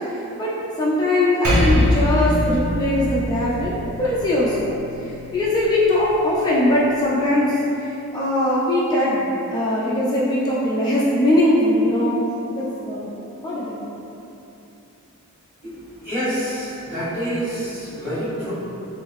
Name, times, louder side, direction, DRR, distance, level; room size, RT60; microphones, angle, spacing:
voice 1, 0.8-4.7 5.0-12.2 12.5-13.1 13.4-13.8, left 1 dB, 20° left, -7 dB, 0.3 m, -20 dB
Percussion, 1.4-6.2, left 1 dB, 75° right, 0.8 m, -23 dB
voice 2, 16.0-18.5, equal, 10° right, -15 dB, 1.4 m, -27 dB
3.7 x 2.6 x 3.0 m, 2.9 s
head